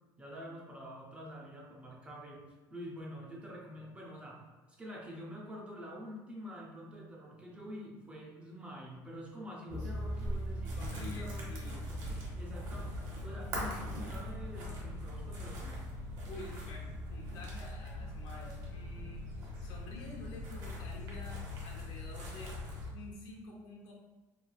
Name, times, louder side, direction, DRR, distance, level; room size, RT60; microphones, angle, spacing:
voice 1, 0.2-4.5 4.8-11.6 11.9-12.0 12.3-15.9, equal, 15° right, -2 dB, 0.4 m, -47 dB
sound 1, 9.7-22.9, left 1 dB, 55° right, 0.9 m, -40 dB
voice 2, 10.8-11.8 16.3-22.6 22.9-23.9, left 2 dB, 80° left, -1 dB, 0.7 m, -50 dB
3.1 x 2.6 x 2.3 m, 1.2 s
cardioid pair, 165°, 8 cm